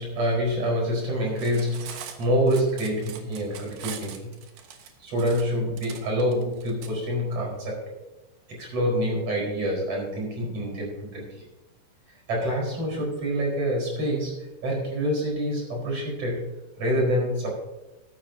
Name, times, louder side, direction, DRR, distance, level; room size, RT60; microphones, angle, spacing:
voice 1, 0.0-4.3 5.0-7.8 8.6-11.4 12.3-17.6, equal, 35° right, -2 dB, 5.2 m, -27 dB
Cutlery silverware, 1.3-6.9, right 8 dB, 65° right, 2.4 m, -42 dB
14.5 x 12.5 x 2.8 m, 1.1 s
omnidirectional pair, 5.2 m